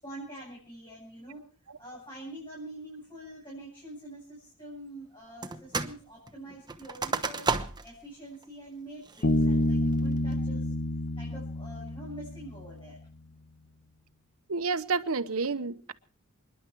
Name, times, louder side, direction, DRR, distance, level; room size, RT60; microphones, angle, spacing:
voice 1, 0.0-1.4 1.8-7.5 7.8-10.7 11.2-13.0, right 1 dB, 25° left, 7.0 m, -45 dB
sound 1, 5.4-6.0 6.3-8.0 8.4-8.5 9.0-9.4 9.9-10.3, right 4 dB, 20° right, 1.0 m, -32 dB
Bass guitar, 9.2-12.7, left 1 dB, 55° left, 1.3 m, -28 dB
voice 2, 14.5-15.9, right 4 dB, 75° right, 1.0 m, -30 dB
28.5 x 11.0 x 4.7 m
head